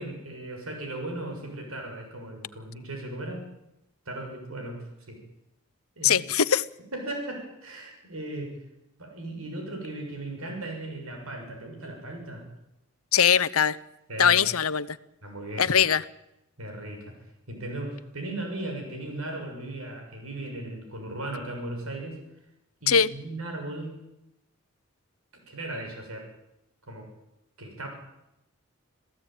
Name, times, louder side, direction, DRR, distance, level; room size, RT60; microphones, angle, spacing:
voice 1, 0.0-3.5 4.0-5.2 6.0-6.2 6.9-8.6 9.0-12.4 14.1-14.4 15.2-15.8 16.6-17.1 17.5-22.2 22.8-24.0 25.5-26.3 26.9-27.1 27.6-27.9, right 1 dB, 85° right, 2 dB, 6.8 m, -37 dB
voice 2, 6.0-6.6 13.1-13.8 14.2-15.0 15.6-16.0 22.9-23.1, left 8 dB, 85° left, 16 dB, 0.8 m, -21 dB
27.0 x 16.5 x 9.2 m, 0.87 s
head